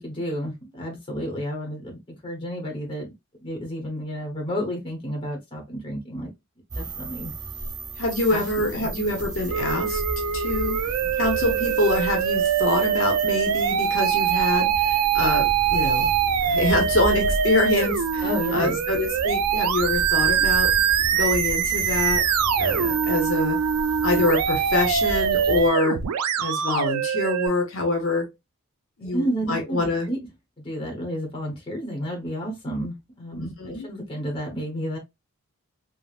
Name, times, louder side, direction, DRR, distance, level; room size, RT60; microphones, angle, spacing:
voice 1, 0.0-3.1 3.4-6.3 6.7-7.3 8.3-8.5 8.8-8.9 18.2-18.8 29.0-30.2 30.6-35.0, equal, 20° left, 0.9 m, -31 dB
sound 1, 6.7-25.7, right 3 dB, 15° right, 0.4 m, -34 dB
voice 2, 8.0-10.0 10.3-10.8 11.2-16.1 16.4-20.7 21.1-22.2 22.6-23.6 24.0-26.0 26.4-28.3 29.0-30.1 33.3-33.9, left 2 dB, 60° left, 0.7 m, -25 dB
Musical instrument, 9.5-27.5, right 8 dB, 90° right, 0.4 m, -23 dB
3.3 x 2.0 x 2.3 m
head